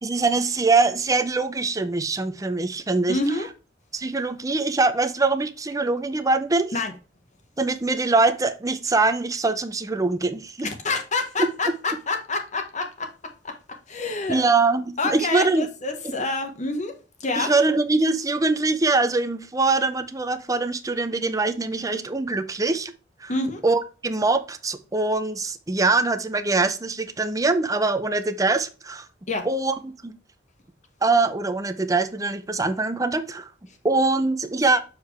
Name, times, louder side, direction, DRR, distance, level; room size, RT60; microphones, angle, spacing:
voice 1, 0.0-3.2 3.9-6.7 7.6-10.7 11.4-11.5 14.3-15.7 16.0-16.1 17.4-22.9 23.2-23.3 23.6-29.1 29.4-30.1 31.0-33.5 33.8-34.8, right 3 dB, 20° right, 0.6 m, -23 dB
voice 2, 3.1-3.5 6.7-6.9 10.8-14.5 15.0-16.9 17.2-17.5 23.3-23.6 29.3-29.5, left 3 dB, 40° left, 1.3 m, -27 dB
7.0 x 4.8 x 3.2 m
head